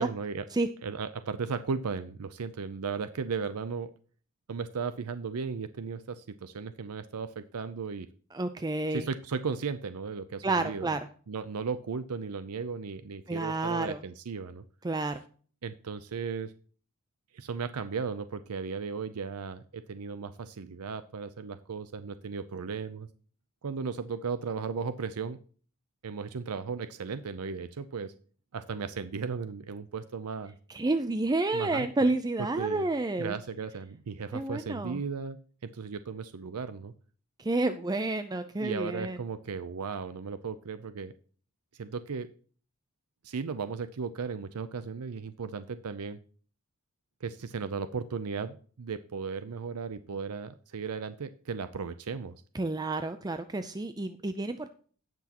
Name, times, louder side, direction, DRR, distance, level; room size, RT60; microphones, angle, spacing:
voice 1, 0.0-0.4 0.8-3.9 4.5-8.1 8.9-10.9 11.3-14.6 15.6-16.5 17.3-23.1 23.6-25.4 26.0-28.1 28.5-30.5 31.5-31.9 32.6-32.9 33.2-35.4 35.6-36.9 38.6-41.1 41.8-42.3 43.2-46.2 47.2-52.4, right 5 dB, 85° right, 12 dB, 0.6 m, -36 dB
voice 2, 8.3-9.1 10.4-11.0 13.3-14.0 14.8-15.2 30.7-33.4 34.3-35.0 37.4-39.2 52.5-54.7, right 2 dB, 20° right, 9 dB, 0.4 m, -30 dB
17.5 x 6.1 x 2.9 m, 0.43 s
head